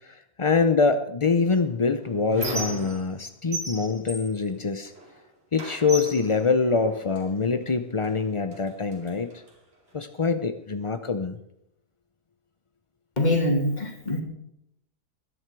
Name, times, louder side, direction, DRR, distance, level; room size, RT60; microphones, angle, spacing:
voice 1, 0.4-4.9 5.5-9.3 9.9-11.4, left 4 dB, 55° left, 8 dB, 0.3 m, -24 dB
Squeak, 1.4-3.2 3.5-5.2 5.6-7.3 8.0-8.2 8.5-9.5, right 1 dB, 40° right, 3.1 m, -36 dB
voice 2, 13.2-14.2, left 1 dB, 25° left, 2 dB, 2.6 m, -24 dB
21.0 x 11.0 x 4.7 m, 0.80 s
omnidirectional pair, 1.7 m